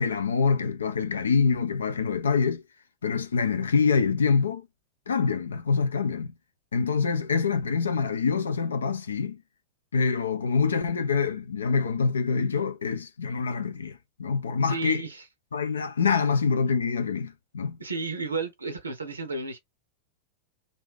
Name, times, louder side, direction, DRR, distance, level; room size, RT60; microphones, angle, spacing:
voice 1, 0.0-2.6 3.0-4.7 5.1-6.3 6.7-9.4 9.9-15.0 15.5-17.8, left 5 dB, 70° left, 0.4 m, -25 dB
voice 2, 14.6-15.2 17.8-19.6, right 3 dB, 75° right, 0.6 m, -32 dB
2.5 x 2.3 x 3.2 m
figure-of-eight pair, 90°, 0 cm